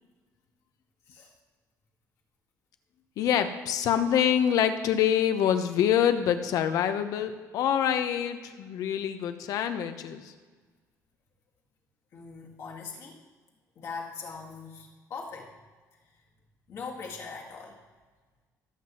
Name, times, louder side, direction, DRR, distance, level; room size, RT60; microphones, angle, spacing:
voice 1, 3.2-10.3, left 9 dB, 70° left, 9 dB, 0.9 m, -26 dB
voice 2, 12.1-13.2 13.8-15.5 16.7-17.8, left 5 dB, 50° left, -2 dB, 1.8 m, -41 dB
18.0 x 7.6 x 3.0 m, 1.4 s
cardioid pair, 160°, 6 cm